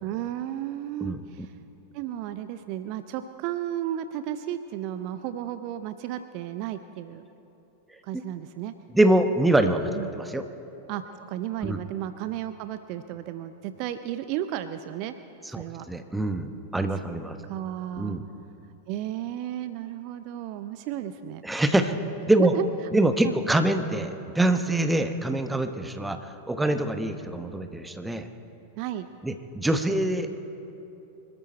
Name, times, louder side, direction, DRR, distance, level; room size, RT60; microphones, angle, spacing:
voice 1, 0.0-1.6 1.9-7.3 8.0-8.7 9.9-10.1 10.9-15.1 15.5-15.9 17.4-18.2 18.9-21.4 22.4-22.7 23.2-23.3 28.8-29.1, right 12 dB, 45° right, 11 dB, 0.5 m, -33 dB
voice 2, 8.9-10.4 11.6-11.8 15.5-17.4 18.0-18.2 21.4-21.9 22.3-22.5 22.9-28.3 29.2-30.3, right 1 dB, 5° right, 8 dB, 0.9 m, -24 dB
25.0 x 13.0 x 4.4 m, 2.9 s
figure-of-eight pair, 90°, 0 cm